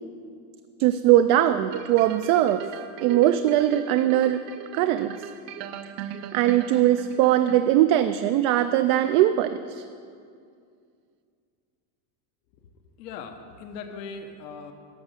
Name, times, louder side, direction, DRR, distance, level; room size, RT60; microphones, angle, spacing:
voice 1, 0.8-2.7 3.0-4.4 4.7-5.2 6.3-9.8, right 12 dB, 55° right, 9 dB, 0.5 m, -21 dB
sound 1, 1.7-8.0 8.5-8.6, right 10 dB, 85° right, 0.8 m, -39 dB
voice 2, 13.0-14.7, left 5 dB, 85° left, 6 dB, 1.1 m, -39 dB
12.0 x 7.2 x 6.7 m, 2.3 s
cardioid pair, 160°, 47 cm